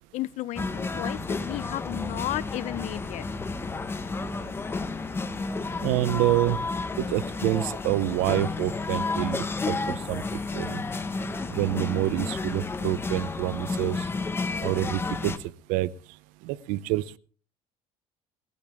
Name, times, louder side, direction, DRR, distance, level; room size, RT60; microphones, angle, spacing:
voice 1, 0.1-3.2, left 16 dB, 60° left, 0.7 m, -33 dB
sound 1, 0.6-15.4, left 3 dB, 15° left, 1.3 m, -31 dB
voice 2, 5.8-6.6 7.0-10.2 10.5-10.8 11.5-14.1 14.6-15.3 15.7-15.9 16.4-17.2, right 16 dB, 85° right, 0.7 m, -27 dB
20.0 x 14.0 x 3.5 m
cardioid pair, 125°, 13 cm